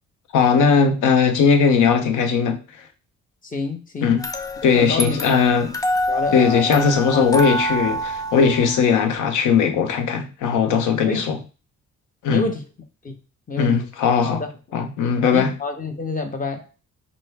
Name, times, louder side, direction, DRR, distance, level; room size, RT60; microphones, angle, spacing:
voice 1, 0.3-2.6 4.0-4.2 4.6-5.7 6.3-11.4 12.2-12.4 13.6-14.4 14.7-15.5, left 6 dB, 85° left, 0.7 m, -18 dB
voice 2, 3.4-4.2 4.6-5.2 6.1-7.4 11.1-11.3 12.3-12.7 13.0-13.2 13.5-13.9 14.2-14.5 15.3-16.7, left 3 dB, 30° left, 0.9 m, -28 dB
sound 1, 4.2-9.2, equal, 10° left, 0.4 m, -27 dB
5.3 x 2.1 x 3.3 m
cardioid pair, 90°, 30 cm